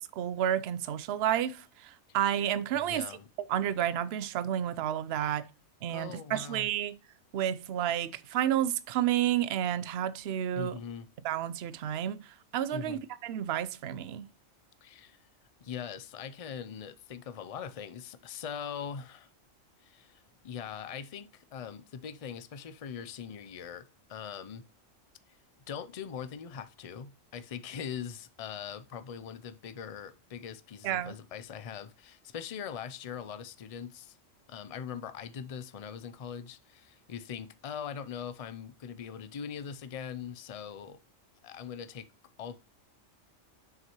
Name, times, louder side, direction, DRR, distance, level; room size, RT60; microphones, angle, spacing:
voice 1, 0.2-3.0 3.5-5.5 5.8-6.9 7.3-10.8 11.2-12.2 12.5-14.3 30.8-31.1, right 11 dB, 60° right, 0.8 m, -30 dB
voice 2, 2.7-3.3 5.9-6.7 10.5-11.1 12.7-13.0 14.8-15.2 15.6-19.3 19.8-24.6 25.7-34.2 34.5-41.0 41.4-42.1 42.4-42.6, left 7 dB, 55° left, 0.4 m, -41 dB
7.2 x 6.3 x 3.0 m
omnidirectional pair, 1.3 m